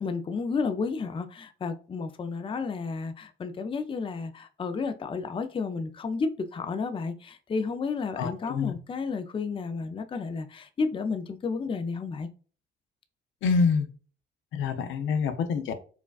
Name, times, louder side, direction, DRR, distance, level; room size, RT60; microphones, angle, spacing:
voice 1, 0.0-12.3, left 4 dB, 25° left, 0.4 m, -32 dB
voice 2, 8.2-8.7 13.4-13.9 14.5-15.7, left 5 dB, 80° left, 0.6 m, -26 dB
4.7 x 2.2 x 2.3 m
cardioid pair, 90°, 20 cm